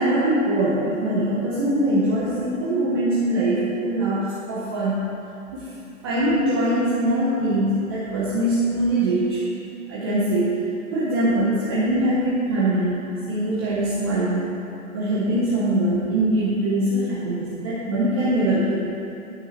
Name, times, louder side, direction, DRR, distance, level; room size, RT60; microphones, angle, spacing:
voice 1, 0.0-5.1 5.5-5.7 6.0-9.4 9.9-10.5 10.9-13.0 13.3-14.4 14.9-18.9, right 1 dB, 20° right, -9 dB, 0.6 m, -22 dB
9.0 x 5.3 x 4.1 m, 2.8 s
hypercardioid pair, 155°, 43 cm